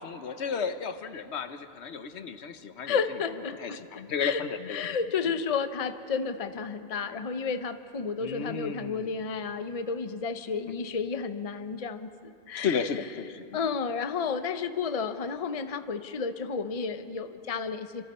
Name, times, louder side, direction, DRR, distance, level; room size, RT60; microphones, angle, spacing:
voice 1, 0.0-3.0 3.6-5.0 8.2-9.2 10.7-10.8 12.6-13.6, left 6 dB, 80° left, 10 dB, 1.1 m, -33 dB
voice 2, 2.9-3.8 4.2-4.4 4.7-12.9 13.5-18.0, left 5 dB, 35° left, 10 dB, 0.8 m, -32 dB
28.5 x 26.0 x 4.3 m, 2.8 s
omnidirectional pair, 1.1 m